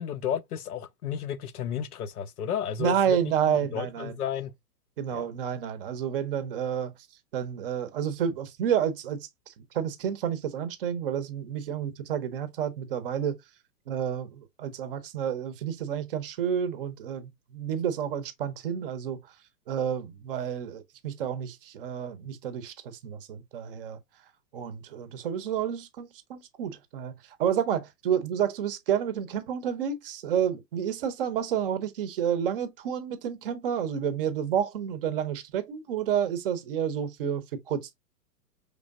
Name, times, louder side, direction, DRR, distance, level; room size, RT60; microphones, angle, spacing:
voice 1, 0.0-4.5 5.1-5.3, left 9 dB, 65° left, 0.6 m, -33 dB
voice 2, 2.8-4.1 5.0-6.9 7.3-13.4 13.9-19.2 19.7-24.0 24.5-37.9, right 9 dB, 35° right, 0.7 m, -30 dB
5.0 x 3.3 x 2.4 m
figure-of-eight pair, 115°, 50 cm